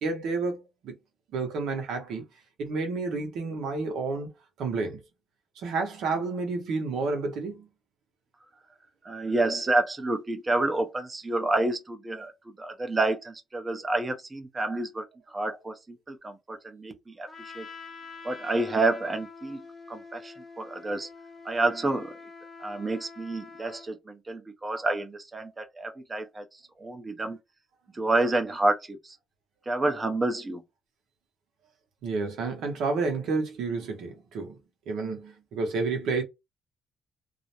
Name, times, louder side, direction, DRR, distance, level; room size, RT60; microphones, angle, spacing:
voice 1, 0.0-0.9 1.3-2.2 2.6-4.3 4.6-5.0 5.6-7.7 32.0-34.6 34.9-36.2, right 4 dB, 80° right, 0.7 m, -30 dB
voice 2, 9.0-12.3 12.6-17.7 18.2-21.1 21.4-22.2 22.6-27.4 27.9-29.2 29.7-30.6, right 2 dB, 25° right, 0.5 m, -29 dB
Trumpet, 17.3-23.9, left 4 dB, 30° left, 0.7 m, -46 dB
2.4 x 2.0 x 2.8 m
cardioid pair, 90°, 0 cm